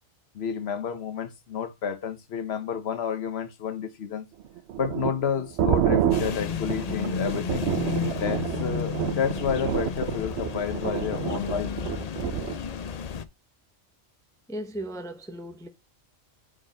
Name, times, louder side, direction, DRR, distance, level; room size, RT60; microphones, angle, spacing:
voice 1, 0.3-4.3 4.8-7.7 8.1-11.7, left 7 dB, 55° left, 1.1 m, -30 dB
sound 1, 4.4-12.6, right 10 dB, 60° right, 0.8 m, -28 dB
sound 2, 6.1-13.3, left 7 dB, 70° left, 0.3 m, -32 dB
voice 2, 14.5-15.7, right 1 dB, 5° left, 0.5 m, -36 dB
4.9 x 4.3 x 5.0 m
omnidirectional pair, 1.4 m